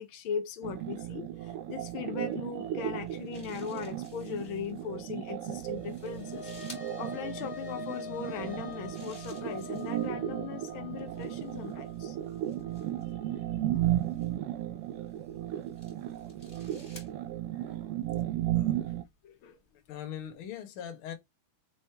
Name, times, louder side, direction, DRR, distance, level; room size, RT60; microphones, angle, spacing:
voice 1, 0.0-12.2 19.2-19.6, left 8 dB, 75° left, 1.2 m, -39 dB
sound 1, 0.6-19.0, right 13 dB, 75° right, 1.4 m, -35 dB
sound 2, 2.8-4.8 5.7-6.9 8.5-10.1 11.0-13.1 14.0-14.3 15.1-17.1, left 2 dB, 20° left, 2.6 m, -55 dB
sound 3, 5.6-14.2, left 6 dB, 35° left, 1.9 m, -46 dB
voice 2, 16.5-16.9 17.5-17.7 18.5-18.8 19.9-21.1, left 10 dB, 55° left, 1.8 m, -42 dB
5.5 x 4.1 x 4.5 m
omnidirectional pair, 3.3 m